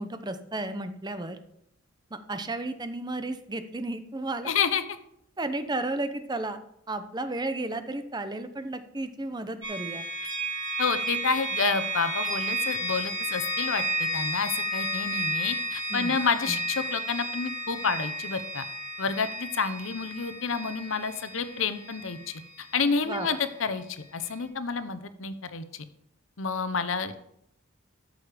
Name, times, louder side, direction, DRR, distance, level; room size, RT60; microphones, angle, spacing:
voice 1, 0.0-1.4 2.1-4.5 5.4-6.6 6.9-10.1 15.9-16.2 16.5-16.6 23.0-23.4, right 2 dB, 20° right, 10 dB, 0.8 m, -33 dB
voice 2, 4.4-4.8 10.8-18.7 19.0-25.9 26.4-27.2, left 5 dB, 75° left, 12 dB, 0.9 m, -29 dB
sound 1, 9.6-23.4, right 1 dB, 75° right, 4.3 m, -32 dB
13.5 x 6.5 x 5.1 m, 0.74 s
head